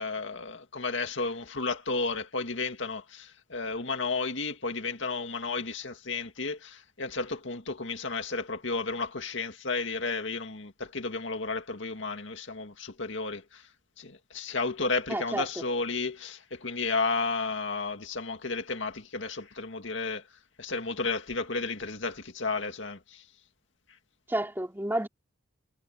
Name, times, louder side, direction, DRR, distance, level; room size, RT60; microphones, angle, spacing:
voice 1, 0.0-13.7 14.0-20.3 20.6-23.3, left 3 dB, 65° left, 2.2 m, -33 dB
voice 2, 15.1-15.6 24.3-25.1, right 1 dB, 10° right, 3.3 m, -30 dB
head